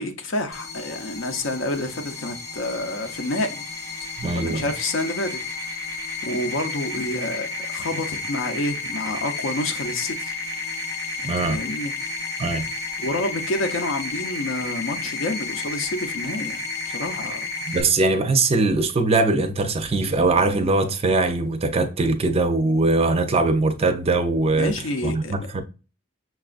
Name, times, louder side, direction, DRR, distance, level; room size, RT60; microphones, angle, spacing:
voice 1, 0.0-3.7 3.9-4.1 4.3-5.4 6.2-10.3 11.2-12.1 13.0-17.5 24.5-25.6, left 2 dB, 85° left, 0.6 m, -28 dB
sound 1, 0.5-17.8, left 3 dB, 15° left, 0.6 m, -32 dB
voice 2, 4.2-4.7 11.2-11.6 12.4-12.6 17.7-24.7 25.0-25.6, right 3 dB, 30° right, 0.4 m, -21 dB
5.8 x 2.3 x 2.4 m
head